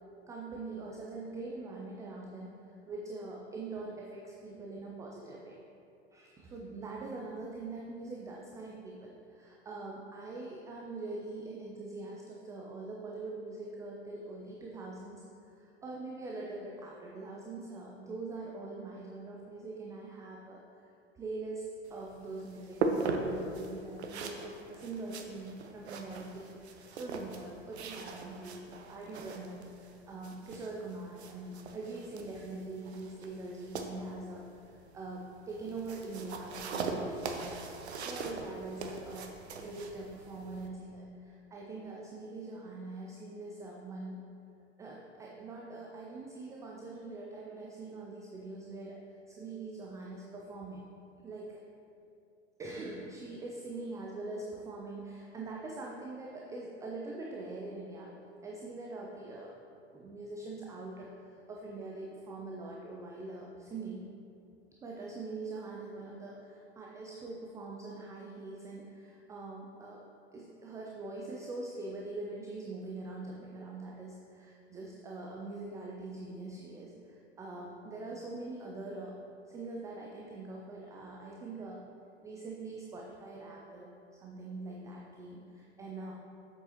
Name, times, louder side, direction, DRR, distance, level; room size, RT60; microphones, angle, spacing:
voice 1, 0.3-5.6 6.1-15.2 15.6-20.6 21.1-37.6 37.9-44.2 44.8-49.0 49.3-50.9 51.2-51.6 52.6-58.1 58.4-59.6 59.9-64.1 64.8-70.0 70.3-79.2 79.5-81.8 82.2-83.9 84.2-86.1, right 2 dB, 10° right, -2 dB, 0.4 m, -43 dB
sound 1, 21.8-40.7, right 3 dB, 65° right, 0.8 m, -40 dB
7.5 x 6.8 x 3.0 m, 2.6 s
figure-of-eight pair, 90°, 35 cm